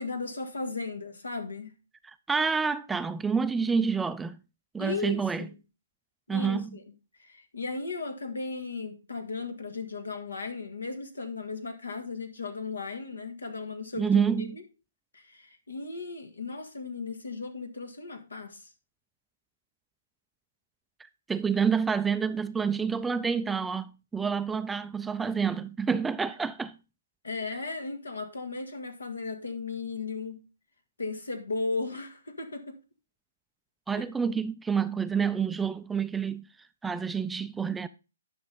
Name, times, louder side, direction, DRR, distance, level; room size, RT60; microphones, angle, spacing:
voice 1, 0.0-1.8 4.8-5.5 6.3-6.8 7.2-14.6 15.1-18.7 27.2-30.4 31.0-32.8 33.9-34.0, left 4 dB, 85° left, 1.9 m, -36 dB
voice 2, 2.0-4.4 4.7-5.5 6.3-6.7 13.9-14.6 21.3-26.7 33.9-36.5 36.8-37.9, right 6 dB, 10° right, 0.4 m, -28 dB
10.5 x 6.1 x 4.0 m
hypercardioid pair, 135°, 0 cm